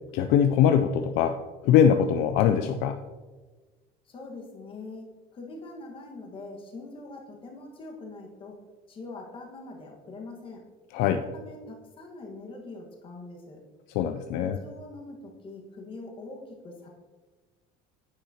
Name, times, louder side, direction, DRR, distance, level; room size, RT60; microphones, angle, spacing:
voice 1, 0.1-1.4 1.6-3.0 10.9-11.2 13.9-14.6, left 8 dB, 65° left, 8 dB, 0.4 m, -22 dB
voice 2, 4.1-5.1 5.3-8.6 8.9-10.6 11.1-13.6 14.3-16.9, left 2 dB, 30° left, 1 dB, 1.5 m, -43 dB
9.5 x 7.1 x 2.8 m, 1.3 s
cardioid pair, 150°, 18 cm